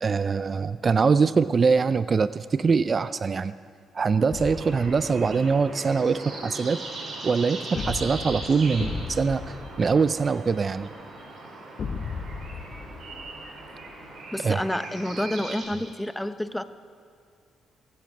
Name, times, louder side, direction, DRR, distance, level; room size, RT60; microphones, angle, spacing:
voice 1, 0.0-3.5 3.9-6.8 7.2-10.9 14.4-14.6, right 5 dB, 40° right, 15 dB, 0.3 m, -23 dB
sound 1, 4.0-15.7, right 2 dB, 55° right, 3.8 m, -39 dB
sound 2, 4.3-5.7 7.7-10.7 11.8-13.9, left 5 dB, 50° left, 1.1 m, -36 dB
voice 2, 14.3-16.6, left 1 dB, 5° left, 12 dB, 0.7 m, -29 dB
23.0 x 11.5 x 5.1 m, 2.2 s
cardioid pair, 90°, 0 cm